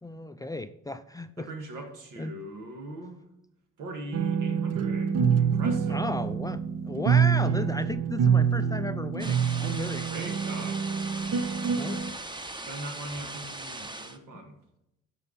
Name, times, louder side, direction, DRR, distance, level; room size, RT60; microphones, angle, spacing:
voice 1, 0.0-1.5 2.2-2.3 5.9-10.1 11.7-12.0, left 2 dB, 10° left, 10 dB, 0.4 m, -34 dB
voice 2, 1.4-3.2 3.8-6.0 10.1-11.5 12.7-14.6, right 1 dB, 85° right, 3 dB, 1.8 m, -41 dB
sound 1, 4.1-12.1, right 7 dB, 55° right, 0.7 m, -26 dB
sound 2, 9.2-14.2, right 2 dB, 15° right, 0.8 m, -39 dB
12.5 x 4.7 x 4.0 m, 0.84 s
cardioid pair, 90°, 30 cm